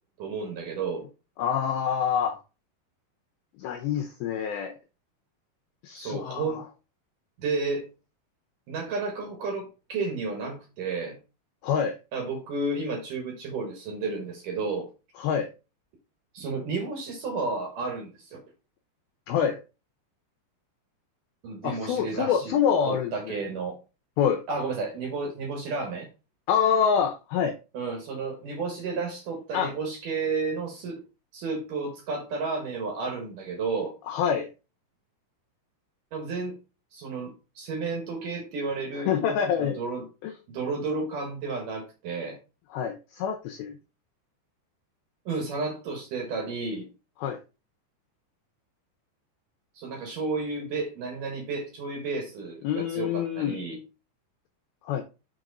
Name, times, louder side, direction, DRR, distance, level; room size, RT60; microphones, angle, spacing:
voice 1, 0.2-1.0 5.9-6.6 7.4-7.9 8.7-11.2 12.1-14.9 16.3-18.4 21.4-22.6 22.8-23.8 24.5-26.1 27.7-31.0 31.3-33.9 36.1-36.6 36.9-39.2 39.6-40.1 40.5-42.4 45.3-46.9 49.8-53.8, right 4 dB, 65° right, 2.3 m, -32 dB
voice 2, 1.4-2.4 3.6-4.7 5.8-6.6 11.6-11.9 15.2-15.5 19.3-19.6 21.6-23.1 24.2-24.4 26.5-27.5 29.5-29.7 34.1-34.5 39.0-39.8 40.2-40.3 42.7-43.8 47.2-47.4 52.6-53.6 54.8-55.0, left 8 dB, 80° left, 2.2 m, -26 dB
6.2 x 4.7 x 3.9 m
omnidirectional pair, 5.2 m